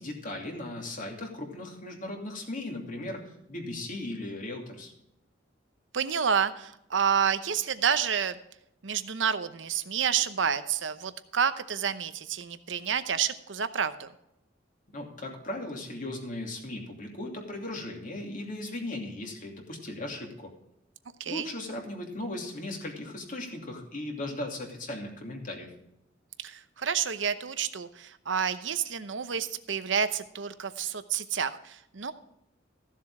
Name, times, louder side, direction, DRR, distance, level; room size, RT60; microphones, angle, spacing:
voice 1, 0.0-3.2 3.5-4.9 14.9-20.5 21.3-25.7, left 1 dB, 45° left, 1 dB, 2.7 m, -37 dB
voice 2, 5.9-8.4 8.8-14.1 21.2-21.5 26.4-32.1, right 7 dB, 70° right, 11 dB, 0.8 m, -29 dB
14.5 x 7.4 x 4.8 m, 0.82 s
head